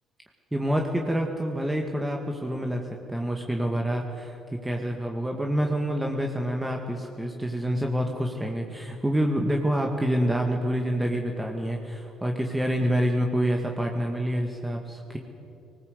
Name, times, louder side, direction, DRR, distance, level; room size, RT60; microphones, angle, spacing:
voice 1, 0.5-4.4 4.6-15.2, equal, 10° right, 2 dB, 2.2 m, -27 dB
19.5 x 19.5 x 8.3 m, 2.8 s
hypercardioid pair, 55°, 0 cm